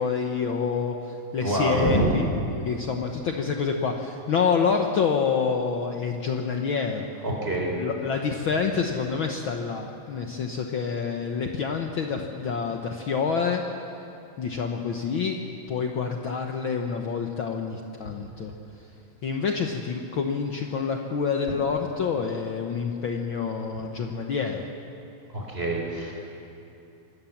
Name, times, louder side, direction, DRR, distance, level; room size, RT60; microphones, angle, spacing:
voice 1, 0.0-2.2 2.5-7.1 7.7-13.6 14.4-15.4 15.7-18.5 19.2-24.6, left 6 dB, 75° left, 3 dB, 1.1 m, -27 dB
voice 2, 1.4-2.2 7.2-7.7 25.3-26.1, right 1 dB, 15° right, -1 dB, 4.2 m, -25 dB
26.5 x 19.0 x 7.3 m, 2.8 s
omnidirectional pair, 3.9 m